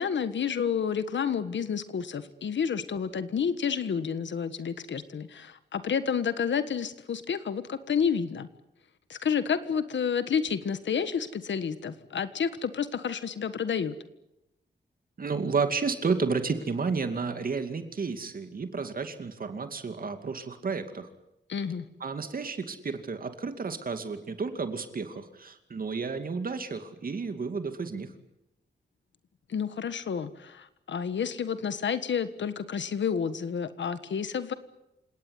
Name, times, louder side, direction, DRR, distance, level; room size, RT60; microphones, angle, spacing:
voice 1, 0.0-8.5 9.1-13.9 21.5-21.9 29.5-34.5, left 7 dB, 90° left, 12 dB, 1.5 m, -30 dB
voice 2, 15.2-21.1 22.0-28.1, right 4 dB, 50° right, 8 dB, 2.4 m, -31 dB
28.0 x 18.5 x 9.7 m, 0.88 s
wide cardioid pair, 145°, 18 cm